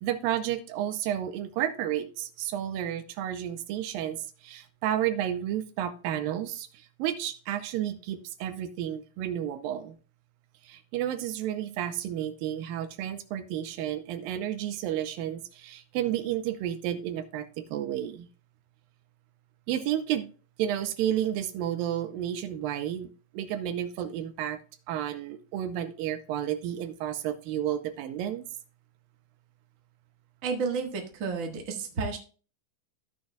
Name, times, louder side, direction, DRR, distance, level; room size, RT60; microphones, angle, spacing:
voice 1, 0.0-6.7 7.0-10.0 10.7-18.3 19.7-20.3 20.6-23.1 23.3-24.6 24.9-28.4, right 11 dB, 85° right, 10 dB, 2.4 m, -31 dB
voice 2, 30.4-32.2, right 5 dB, 45° right, 1 dB, 1.0 m, -31 dB
14.5 x 6.4 x 2.3 m, 0.38 s
omnidirectional pair, 4.1 m